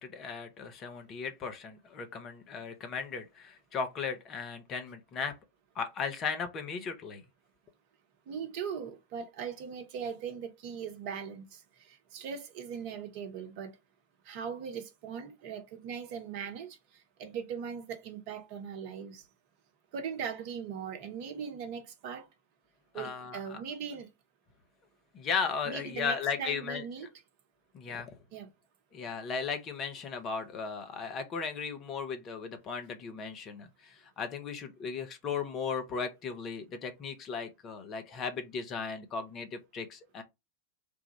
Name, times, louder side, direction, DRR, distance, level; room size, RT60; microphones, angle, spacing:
voice 1, 0.0-5.3 5.7-7.2 22.9-23.6 25.1-26.8 27.7-28.2 28.9-40.2, left 6 dB, 30° left, 0.9 m, -36 dB
voice 2, 8.3-13.7 14.2-16.8 17.2-19.2 19.9-22.3 22.9-24.1 25.6-27.1 28.3-28.5, right 7 dB, 45° right, 1.0 m, -39 dB
3.6 x 2.4 x 3.0 m
figure-of-eight pair, 90°, 0 cm